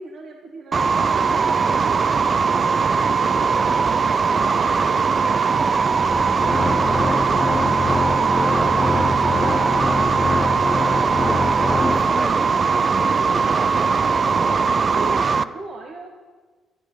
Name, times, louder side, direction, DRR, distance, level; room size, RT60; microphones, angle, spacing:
voice 1, 0.0-10.3 14.9-16.1, right 3 dB, 55° right, 1 dB, 1.8 m, -39 dB
sound 1, 0.7-15.4, right 5 dB, 40° right, 0.5 m, -20 dB
Organ, 5.9-12.5, left 3 dB, 25° left, 0.6 m, -25 dB
voice 2, 8.6-9.0 11.0-13.9 14.2-14.6, right 1 dB, 15° right, 8 dB, 1.1 m, -34 dB
12.5 x 8.9 x 7.9 m, 1.4 s
cardioid pair, 90°, 0 cm